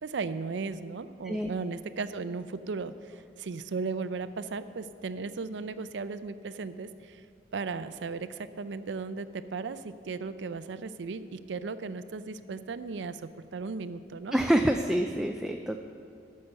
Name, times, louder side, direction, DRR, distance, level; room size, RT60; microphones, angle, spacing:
voice 1, 0.0-7.2 7.5-14.4, right 4 dB, 90° right, 13 dB, 0.5 m, -36 dB
voice 2, 14.3-15.8, right 1 dB, 5° right, 3 dB, 0.3 m, -26 dB
13.5 x 6.5 x 5.5 m, 2.5 s
head